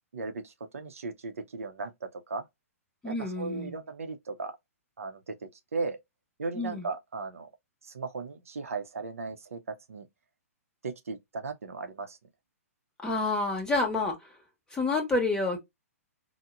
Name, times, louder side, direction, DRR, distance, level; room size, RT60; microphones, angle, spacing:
voice 1, 0.1-2.4 3.0-4.5 5.0-6.0 6.4-7.5 7.9-10.1 10.8-12.2, right 4 dB, 65° right, 0.6 m, -37 dB
voice 2, 3.0-3.8 6.5-6.9 13.0-14.2 14.7-15.6, left 3 dB, 10° left, 0.9 m, -28 dB
4.4 x 2.0 x 2.4 m
figure-of-eight pair, 115°, 8 cm